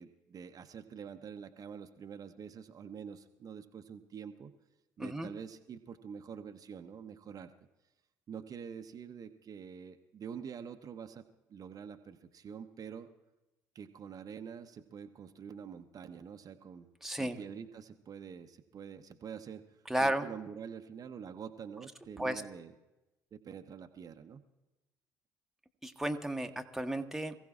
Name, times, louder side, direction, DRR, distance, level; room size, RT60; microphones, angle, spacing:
voice 1, 0.0-4.5 5.0-7.5 8.3-13.1 13.7-16.9 17.2-19.6 20.0-22.7 23.3-24.4, right 7 dB, 40° right, 6 dB, 0.8 m, -46 dB
voice 2, 5.0-5.3 17.0-17.4 19.9-20.3 22.2-22.4 25.8-27.4, right 1 dB, 5° right, 5 dB, 1.0 m, -33 dB
27.5 x 15.5 x 2.4 m, 1.0 s
figure-of-eight pair, 50°, 9 cm